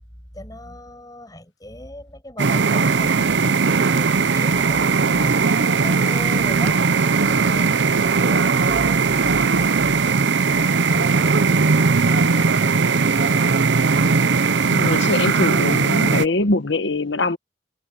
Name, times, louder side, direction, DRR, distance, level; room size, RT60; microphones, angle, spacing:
voice 1, 0.3-6.8 7.2-11.4 11.9-13.4, left 1 dB, 20° left, 7.9 m, -39 dB
sound 1, 2.4-16.2, right 4 dB, 70° right, 0.7 m, -18 dB
voice 2, 14.7-17.4, left 2 dB, 75° left, 1.2 m, -22 dB
head